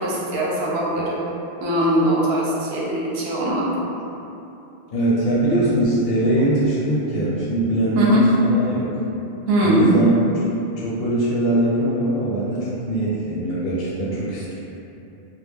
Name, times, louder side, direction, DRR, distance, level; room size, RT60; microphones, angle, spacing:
voice 1, 0.0-1.2 1.6-3.7 7.9-8.2 9.5-9.9, right 1 dB, 70° right, -5 dB, 0.8 m, -21 dB
voice 2, 4.9-8.9 9.6-10.4 10.8-14.5, right 1 dB, 65° left, -8 dB, 0.9 m, -21 dB
2.2 x 2.2 x 3.3 m, 2.9 s
omnidirectional pair, 1.1 m